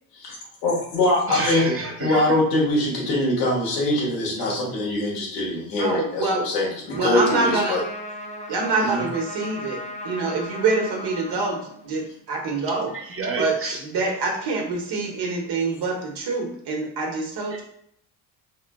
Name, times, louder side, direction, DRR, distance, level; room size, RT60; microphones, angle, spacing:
voice 1, 0.6-1.7 2.0-7.8 8.8-9.0, left 1 dB, 90° left, -4 dB, 1.4 m, -23 dB
voice 2, 1.3-2.2 12.9-13.8 17.5-17.6, right 3 dB, 30° right, 0 dB, 1.0 m, -29 dB
voice 3, 5.8-6.5 6.9-7.8 8.5-12.9 13.4-13.5 13.8-17.6, right 3 dB, 55° right, 0 dB, 1.3 m, -25 dB
Trumpet, 6.9-12.2, left 1 dB, 15° left, 0.7 m, -36 dB
3.6 x 3.4 x 2.2 m, 0.68 s
hypercardioid pair, 60°, 47 cm